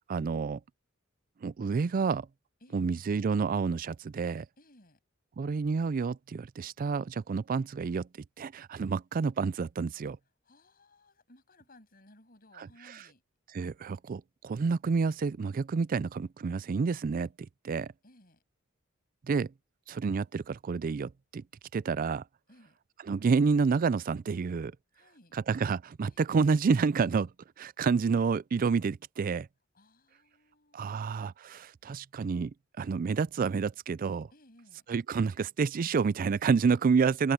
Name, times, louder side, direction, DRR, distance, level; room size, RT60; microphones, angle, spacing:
voice 1, 0.1-0.6 1.4-2.3 2.7-4.4 5.4-8.1 8.4-10.2 13.5-17.3 17.6-17.9 19.3-19.5 19.9-21.4 21.7-22.2 23.1-24.7 25.3-27.3 27.6-29.5 30.7-32.5 32.8-34.3 34.9-37.3, right 5 dB, 45° right, 0.4 m, -29 dB
voice 2, 4.6-5.0 10.4-13.2 18.0-18.4 22.5-22.8 24.9-25.4 26.1-26.3 29.7-31.0 34.3-34.9, left 1 dB, 45° left, 7.7 m, -60 dB
head